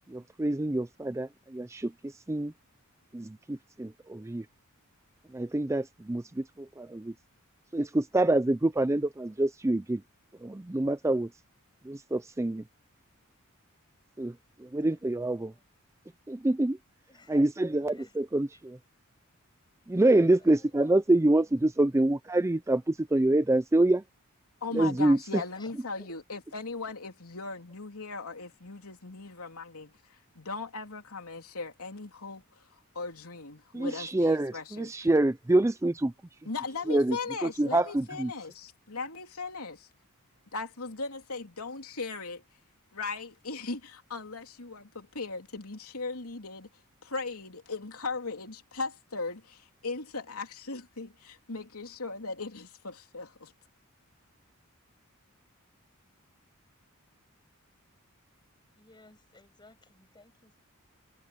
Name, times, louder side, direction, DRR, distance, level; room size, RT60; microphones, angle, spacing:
voice 1, 0.1-2.5 3.1-4.5 5.3-7.1 7.7-10.0 10.4-11.3 11.8-12.6 14.2-14.3 14.6-15.5 16.3-16.8 17.3-18.8 19.9-24.0 24.7-25.4 33.7-36.1 36.9-37.2 37.4-38.3, right 1 dB, 15° right, 0.4 m, -26 dB
voice 2, 6.2-6.6 14.8-15.6 17.1-17.5 17.8-18.2 18.5-18.6 20.0-20.9 21.4-21.5 25.5-26.1 33.6-34.2 36.6-36.9 58.7-60.6, left 2 dB, 20° left, 6.8 m, -58 dB
voice 3, 24.6-35.1 36.4-39.9 40.5-42.4 42.9-46.7 47.0-53.5, left 3 dB, 80° left, 3.3 m, -38 dB
head